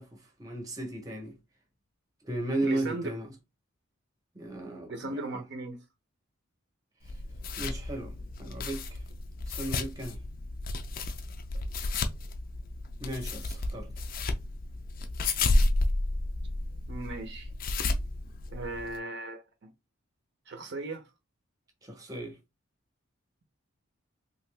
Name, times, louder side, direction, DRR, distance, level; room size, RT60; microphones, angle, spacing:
voice 1, 0.0-1.4 2.2-3.3 4.3-5.4 7.6-9.0 9.5-10.2 13.0-13.9 21.8-22.4, right 1 dB, 15° right, 0.7 m, -35 dB
voice 2, 2.6-3.2 4.9-5.8 11.5-11.6 16.9-17.5 18.5-19.7 20.5-21.1, right 2 dB, 55° right, 0.6 m, -37 dB
sound 1, 7.0-19.0, left 2 dB, 40° left, 0.4 m, -32 dB
2.8 x 2.5 x 3.2 m
head